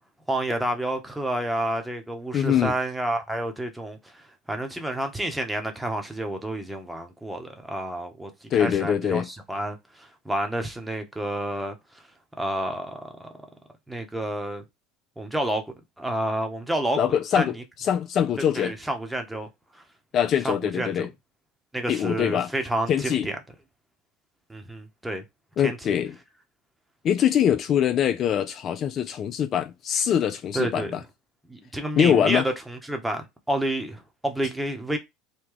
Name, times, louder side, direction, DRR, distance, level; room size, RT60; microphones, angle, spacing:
voice 1, 0.3-12.0 12.4-13.3 13.9-14.6 15.2-17.0 17.3-17.5 18.5-19.5 19.7-19.8 20.4-21.1 21.7-23.4 24.5-25.2 25.6-25.9 30.5-30.9 31.5-35.0, right 1 dB, 5° right, 0.9 m, -29 dB
voice 2, 2.3-2.7 8.5-9.3 17.0-18.7 20.1-21.1 21.9-22.5 22.9-23.3 25.6-26.1 27.0-31.0 32.0-32.4, left 9 dB, 45° left, 0.4 m, -23 dB
3.1 x 2.2 x 3.7 m
supercardioid pair, 100°, 0 cm